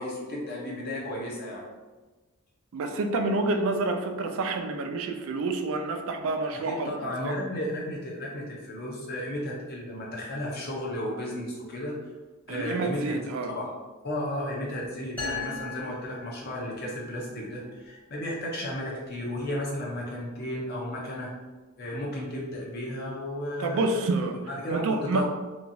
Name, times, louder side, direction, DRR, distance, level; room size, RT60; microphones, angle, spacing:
voice 1, 0.0-1.6 6.7-11.9 12.5-13.7 14.0-21.3 21.8-24.1 24.5-25.2, left 1 dB, 45° left, -3 dB, 0.6 m, -34 dB
voice 2, 2.7-6.9 7.2-7.3 12.5-13.5 23.6-24.4 24.7-25.2, right 3 dB, 65° right, 5 dB, 0.3 m, -28 dB
sound 1, 15.2-16.9, left 5 dB, 5° left, 0.7 m, -37 dB
2.9 x 2.3 x 2.6 m, 1.3 s
head